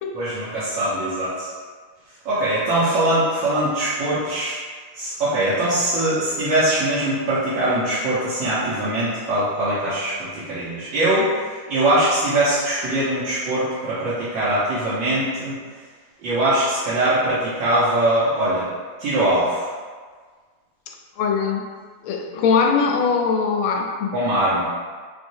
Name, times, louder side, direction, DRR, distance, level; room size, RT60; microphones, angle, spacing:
voice 1, 0.1-1.5 2.2-4.6 5.0-15.6 16.2-18.7 19.0-19.7 24.1-24.7, right 1 dB, 65° right, -12 dB, 1.5 m, -22 dB
voice 2, 20.9-21.7 22.0-24.1, left 5 dB, 80° left, 1 dB, 1.4 m, -21 dB
6.1 x 2.5 x 2.7 m, 1.5 s
omnidirectional pair, 2.4 m